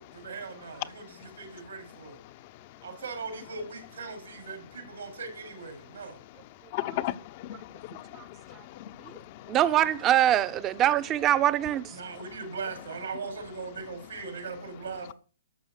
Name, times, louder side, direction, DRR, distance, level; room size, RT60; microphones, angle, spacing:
voice 1, 0.0-2.2 2.8-6.2 11.9-15.1, right 4 dB, 80° right, 4.3 m, -39 dB
voice 2, 0.9-1.4 2.2-2.8 6.5-9.6 12.1-12.2, left 15 dB, 40° left, 0.9 m, -38 dB
voice 3, 9.5-12.0, right 12 dB, 25° right, 0.9 m, -23 dB
12.0 x 7.2 x 6.5 m
hypercardioid pair, 130°, 0 cm